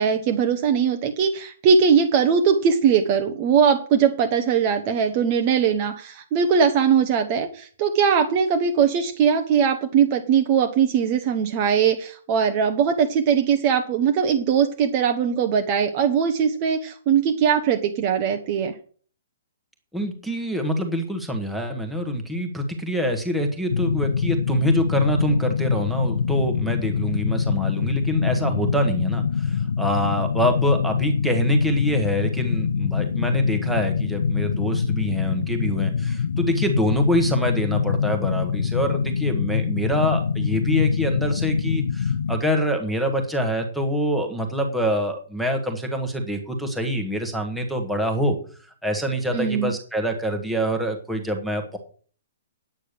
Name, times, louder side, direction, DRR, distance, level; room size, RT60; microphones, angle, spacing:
voice 1, 0.0-18.8 49.3-49.7, right 7 dB, 20° right, 5 dB, 0.8 m, -20 dB
voice 2, 19.9-48.4 48.8-51.8, equal, ahead, 2 dB, 1.3 m, -25 dB
sound 1, 23.7-42.4, left 6 dB, 70° left, 0.7 m, -24 dB
9.3 x 8.8 x 6.7 m, 0.43 s
hypercardioid pair, 180°, 0 cm